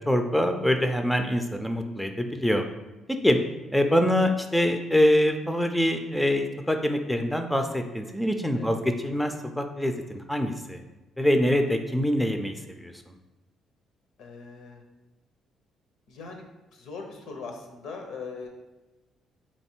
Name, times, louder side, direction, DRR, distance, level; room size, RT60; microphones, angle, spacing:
voice 1, 0.1-2.7 3.2-3.4 3.7-10.8 11.2-13.1, equal, 5° left, 6 dB, 0.3 m, -24 dB
voice 2, 14.2-14.8 16.1-16.4 16.7-18.5, left 4 dB, 80° left, 3 dB, 0.8 m, -40 dB
3.7 x 3.2 x 4.4 m, 1.1 s
cardioid pair, 115°, 0 cm